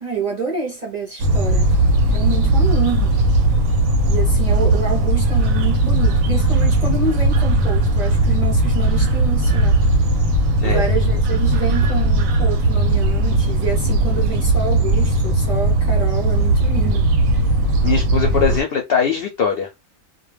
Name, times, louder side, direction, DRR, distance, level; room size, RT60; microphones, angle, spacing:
voice 1, 0.0-1.8 2.1-3.2 4.1-9.8 10.6-17.1, right 4 dB, 45° right, 0.6 m, -27 dB
sound 1, 1.2-18.6, right 2 dB, 90° right, 1.0 m, -17 dB
voice 2, 17.8-19.7, left 7 dB, 65° left, 0.6 m, -21 dB
2.3 x 2.1 x 3.2 m
omnidirectional pair, 1.4 m